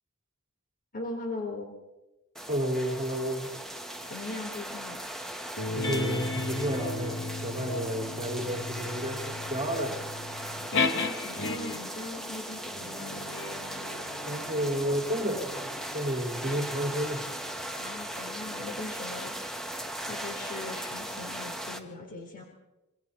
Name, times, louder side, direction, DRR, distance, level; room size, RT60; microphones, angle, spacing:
voice 1, 0.9-1.7 4.1-5.0 10.9-13.3 17.7-19.7 20.1-22.4, left 2 dB, 40° left, 1 dB, 4.2 m, -40 dB
sound 1, 2.3-21.8, right 1 dB, ahead, 2.1 m, -38 dB
voice 2, 2.5-3.5 5.7-10.0 14.3-17.2, equal, 30° right, 1 dB, 5.2 m, -31 dB
sound 2, 5.6-12.0 12.7-17.6, left 3 dB, 60° left, 2.3 m, -35 dB
28.5 x 25.5 x 4.4 m, 0.98 s
head